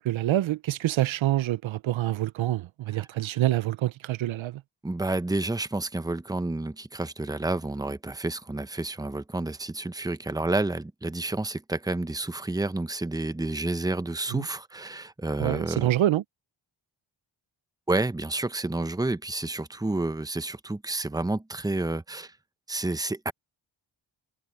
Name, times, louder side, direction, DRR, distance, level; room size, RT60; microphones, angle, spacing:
voice 1, 0.0-4.6 14.3-14.5 15.4-16.2, right 14 dB, 80° right, 0.6 m, -26 dB
voice 2, 4.8-15.9 17.9-22.3 22.7-23.3, right 2 dB, 10° right, 0.8 m, -30 dB
wide cardioid pair, 85°, 47 cm